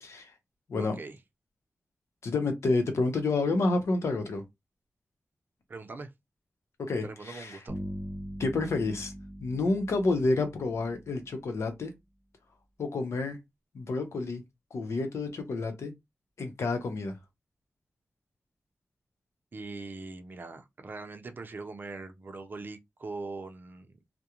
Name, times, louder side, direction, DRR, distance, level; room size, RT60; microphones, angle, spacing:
voice 1, 0.0-0.3 0.7-1.0 2.2-4.4 6.8-7.6 8.4-9.1 9.4-11.9 12.8-13.4 13.7-14.4 14.7-15.9 16.4-17.2, left 3 dB, 90° left, 0.7 m, -29 dB
voice 2, 0.8-1.2 5.7-6.1 7.0-7.8 19.5-23.9, right 3 dB, 45° right, 0.5 m, -41 dB
Bass guitar, 7.7-11.5, equal, 10° right, 1.0 m, -41 dB
2.4 x 2.1 x 2.8 m
wide cardioid pair, 135°, 5 cm